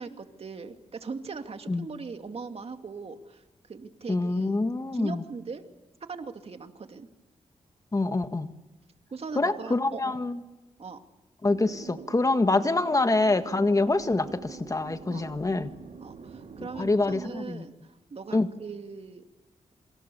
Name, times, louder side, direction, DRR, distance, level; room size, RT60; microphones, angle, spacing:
voice 1, 0.0-3.4 3.7-4.5 4.9-5.7 6.1-7.1 9.1-10.2 10.8-11.0 15.1-15.3 16.0-19.2, right 4 dB, 55° right, 6 dB, 2.4 m, -40 dB
voice 2, 4.1-5.2 7.9-8.5 9.4-10.4 11.4-15.7 16.8-17.6 18.3-18.5, left 2 dB, 30° left, 9 dB, 1.7 m, -25 dB
sound 1, 11.5-17.2, right 5 dB, 70° right, 4.1 m, -45 dB
27.5 x 26.5 x 7.0 m, 1.1 s
cardioid pair, 65°, 12 cm